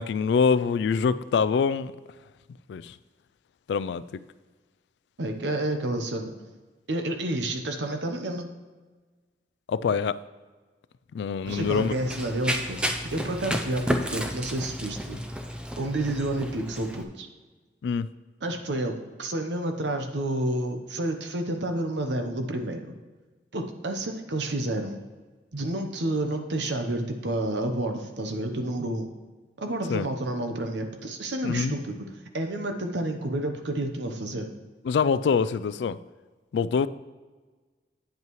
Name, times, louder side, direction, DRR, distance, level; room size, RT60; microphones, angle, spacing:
voice 1, 0.0-1.9 2.7-3.0 3.7-4.2 9.7-10.2 11.1-12.0 17.8-18.1 29.9-30.1 31.4-31.7 34.9-36.0 36.5-36.9, left 5 dB, 75° left, 17 dB, 0.3 m, -25 dB
voice 2, 5.2-6.3 6.9-8.5 11.5-15.2 15.8-17.3 18.4-18.9 19.2-22.9 23.5-25.0 25.5-29.1 29.6-32.0 32.3-34.5, right 1 dB, 80° right, 5 dB, 0.9 m, -30 dB
Run, 11.5-17.0, equal, 5° right, 0.5 m, -32 dB
9.1 x 8.1 x 3.1 m, 1.3 s
head